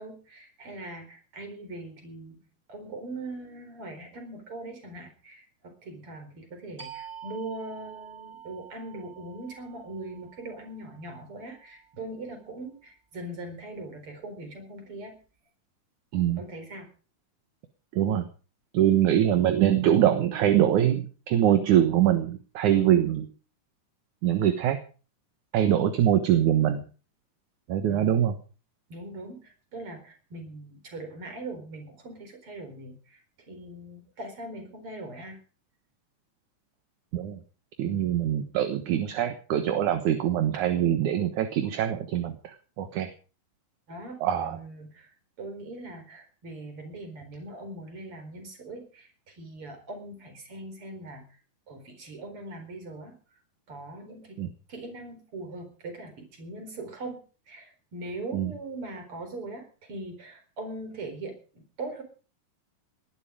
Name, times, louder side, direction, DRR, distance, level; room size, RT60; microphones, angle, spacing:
voice 1, 0.0-2.4 2.7-15.2 16.4-16.9 27.9-28.3 28.9-35.4 37.8-38.2 43.9-45.1 45.4-51.2 51.7-53.2 53.7-54.4 54.7-62.0, right 2 dB, 40° right, 6 dB, 5.1 m, -41 dB
sound 1, 6.8-12.1, right 8 dB, 15° right, 4.2 m, -47 dB
voice 2, 18.7-23.3 24.2-24.8 25.5-26.8 27.7-28.4 37.1-37.4 37.8-42.3 42.8-43.1 44.2-44.6 54.4-54.5 58.3-58.5, right 11 dB, 65° right, 9 dB, 2.6 m, -23 dB
19.5 x 12.0 x 5.0 m, 0.37 s
omnidirectional pair, 3.9 m